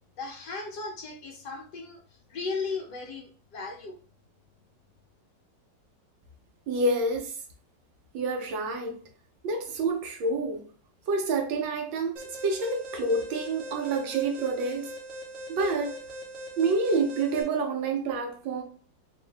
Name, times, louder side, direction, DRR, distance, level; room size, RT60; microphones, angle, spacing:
voice 1, 0.2-2.0 2.3-3.9, left 4 dB, 65° left, 1.4 m, -36 dB
voice 2, 6.7-7.4 8.1-9.0 9.4-10.7 11.1-14.9 15.5-15.9 16.6-18.6, right 3 dB, 90° right, 1.6 m, -28 dB
Alarm, 12.2-17.4, right 1 dB, 55° right, 1.1 m, -41 dB
3.6 x 2.7 x 3.3 m
omnidirectional pair, 2.0 m